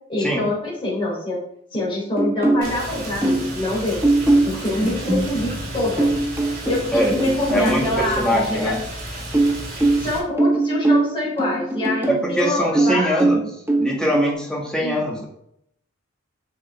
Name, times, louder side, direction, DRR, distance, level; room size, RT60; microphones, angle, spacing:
voice 1, 0.1-1.4 1.7-4.0 4.4-6.1 6.7-8.8 10.0-13.2 14.8-15.0, left 1 dB, 25° left, -6 dB, 3.5 m, -25 dB
sound 1, 2.2-3.6 4.0-7.9 9.3-12.3 12.8-14.3, right 2 dB, 10° right, 1.1 m, -21 dB
Rain, 2.6-10.2, right 1 dB, 45° right, 2.4 m, -33 dB
voice 2, 7.5-8.8 12.1-13.4 13.8-15.2, equal, 5° left, -3 dB, 1.9 m, -22 dB
8.0 x 6.3 x 3.5 m, 0.73 s
head